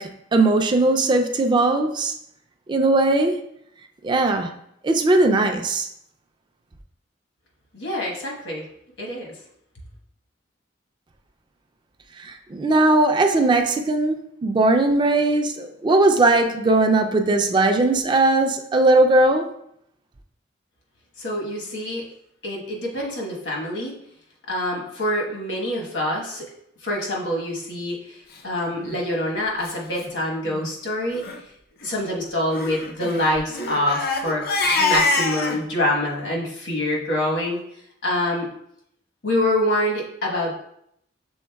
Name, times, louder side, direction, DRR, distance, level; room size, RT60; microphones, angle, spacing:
voice 1, 0.0-2.1 2.7-3.3 4.0-4.5 4.8-5.9 12.2-19.5, right 2 dB, 25° right, 5 dB, 0.3 m, -19 dB
voice 2, 7.7-8.6 9.0-9.3 21.2-22.0 22.4-23.9 24.5-26.5 26.8-31.2 31.8-37.6 38.0-38.5 39.2-40.5, left 1 dB, 80° left, -2 dB, 1.2 m, -25 dB
Crying sobbing, 28.7-29.0 29.6-29.7 30.0-30.1 30.4-30.7 31.1-31.4 32.5-35.6, left 3 dB, 60° left, 0.5 m, -25 dB
6.2 x 3.6 x 2.3 m, 0.73 s
head